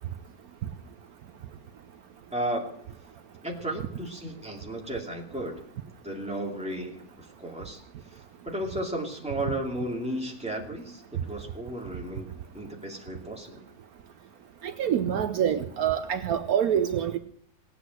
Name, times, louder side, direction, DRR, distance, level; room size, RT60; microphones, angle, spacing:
voice 1, 2.3-2.7 3.4-5.7 6.0-7.8 8.1-12.3 12.5-13.6, right 1 dB, 5° right, -1 dB, 2.4 m, -34 dB
voice 2, 14.6-17.2, right 9 dB, 70° right, 9 dB, 1.2 m, -26 dB
18.5 x 8.2 x 7.7 m, 0.66 s
omnidirectional pair, 1.7 m